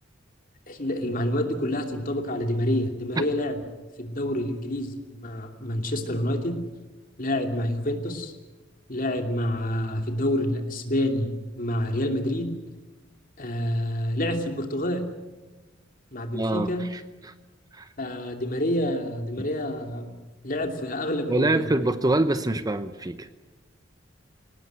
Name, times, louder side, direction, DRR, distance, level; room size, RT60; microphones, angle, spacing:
voice 1, 0.7-3.6 4.0-4.9 5.2-6.6 7.2-8.3 8.9-12.5 13.4-15.0 16.1-16.9 18.0-20.1 20.4-21.7, left 1 dB, 45° left, 4 dB, 2.8 m, -28 dB
voice 2, 16.3-17.3 17.7-17.9 21.3-23.3, right 2 dB, 20° right, 11 dB, 0.8 m, -25 dB
23.0 x 18.5 x 8.1 m, 1.2 s
head